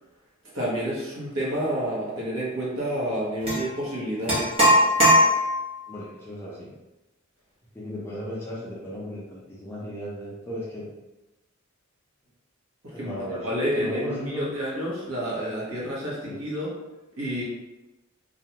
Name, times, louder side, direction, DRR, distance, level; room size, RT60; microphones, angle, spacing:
voice 1, 0.5-4.6 12.8-13.2 13.4-16.7 17.2-17.4, equal, 75° right, -6 dB, 1.0 m, -29 dB
sound 1, 3.5-3.6 4.3-5.7, equal, 30° right, 0.7 m, -19 dB
voice 2, 5.9-6.7 7.7-10.9 12.9-14.5 16.2-16.4, equal, 10° left, -6 dB, 0.5 m, -35 dB
2.4 x 2.3 x 2.9 m, 1.0 s
head